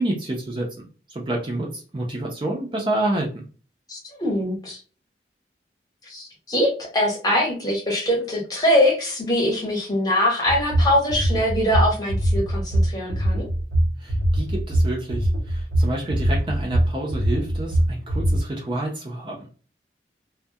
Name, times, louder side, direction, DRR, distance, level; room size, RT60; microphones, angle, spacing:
voice 1, 0.0-3.4 14.0-19.5, right 1 dB, 25° right, -1 dB, 0.5 m, -28 dB
voice 2, 3.9-4.8 6.0-13.5, left 1 dB, 20° left, -1 dB, 0.8 m, -23 dB
sound 1, 10.5-18.4, right 1 dB, 90° right, 0.8 m, -22 dB
2.2 x 2.0 x 2.7 m, 0.38 s
head